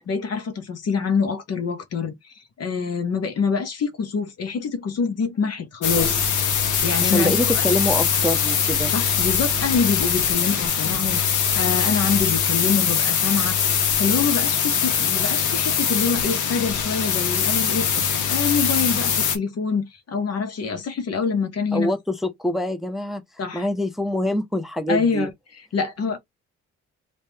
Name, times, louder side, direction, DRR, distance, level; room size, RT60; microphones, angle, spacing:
voice 1, 0.1-6.2 6.8-7.6 8.9-13.6 14.0-21.9 23.4-23.6 24.9-25.3 25.7-26.2, left 5 dB, 55° left, 1.1 m, -25 dB
sound 1, 5.8-19.4, left 7 dB, 80° left, 1.1 m, -22 dB
voice 2, 7.0-8.9 21.7-25.3, left 1 dB, ahead, 0.7 m, -25 dB
2.9 x 2.8 x 3.4 m
cardioid pair, 90°, 30 cm